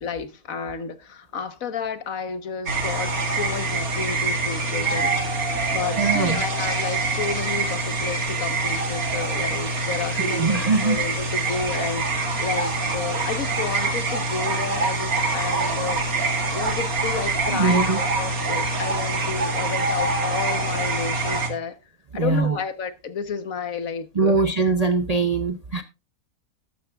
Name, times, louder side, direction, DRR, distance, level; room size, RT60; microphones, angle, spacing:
voice 1, 0.0-16.0 16.5-21.8 22.1-24.4, left 6 dB, 65° left, 1.5 m, -31 dB
sound 1, 2.7-21.5, right 3 dB, 70° right, 2.4 m, -25 dB
voice 2, 6.0-6.4 10.1-11.0 17.5-18.0 22.1-22.6 24.1-25.8, right 4 dB, 40° right, 0.5 m, -22 dB
13.5 x 12.0 x 2.4 m
omnidirectional pair, 1.6 m